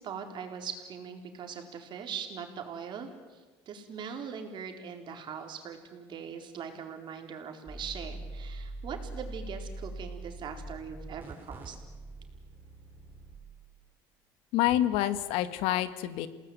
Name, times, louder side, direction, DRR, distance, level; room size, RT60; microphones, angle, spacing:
voice 1, 0.0-11.8, right 7 dB, 55° right, 5 dB, 4.3 m, -41 dB
sound 1, 7.7-13.4, right 2 dB, 20° right, 5.3 m, -43 dB
voice 2, 14.5-16.3, left 13 dB, 85° left, 13 dB, 1.6 m, -27 dB
28.5 x 19.0 x 9.3 m, 1.3 s
cardioid pair, 105°, 10 cm